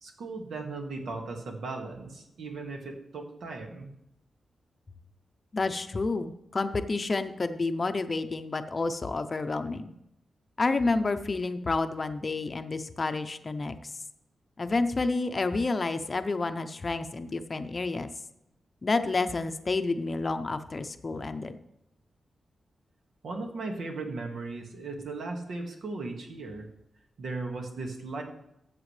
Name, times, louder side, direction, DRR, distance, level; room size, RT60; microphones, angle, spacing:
voice 1, 0.0-3.9 23.2-26.7 27.2-28.2, right 3 dB, 80° right, 2 dB, 1.9 m, -37 dB
voice 2, 5.5-9.9 10.6-13.8 14.6-18.1 18.8-21.6, left 3 dB, 30° left, 9 dB, 0.6 m, -29 dB
14.0 x 7.4 x 3.3 m, 0.83 s
wide cardioid pair, 140°, 0 cm